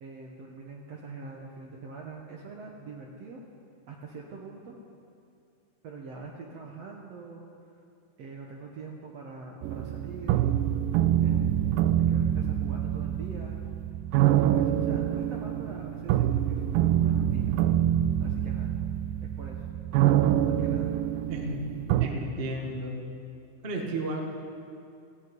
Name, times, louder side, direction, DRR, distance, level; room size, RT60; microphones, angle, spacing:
voice 1, 0.0-3.4 3.9-4.8 5.8-7.5 8.2-10.4 11.2-13.6 14.4-17.6 18.2-18.7 19.2-19.6 20.4-20.9, right 4 dB, 60° right, 0 dB, 1.8 m, -44 dB
sound 1, 9.6-22.1, right 11 dB, 85° right, 2.2 m, -26 dB
voice 2, 21.3-21.7 22.0-23.0 23.6-24.2, right 2 dB, 30° right, 0 dB, 1.1 m, -33 dB
16.0 x 16.0 x 5.4 m, 2.5 s
omnidirectional pair, 4.1 m